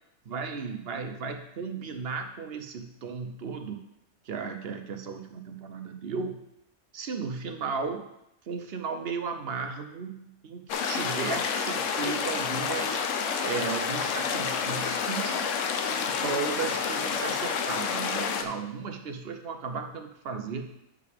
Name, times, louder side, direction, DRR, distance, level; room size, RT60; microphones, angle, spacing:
voice 1, 0.3-3.8 4.2-6.4 6.9-8.1 8.5-13.0 13.4-15.5 15.9-20.7, right 5 dB, 50° right, 6 dB, 0.9 m, -35 dB
sound 1, 10.7-18.4, left 6 dB, 65° left, 1.0 m, -29 dB
11.5 x 5.1 x 3.5 m, 0.83 s
omnidirectional pair, 1.5 m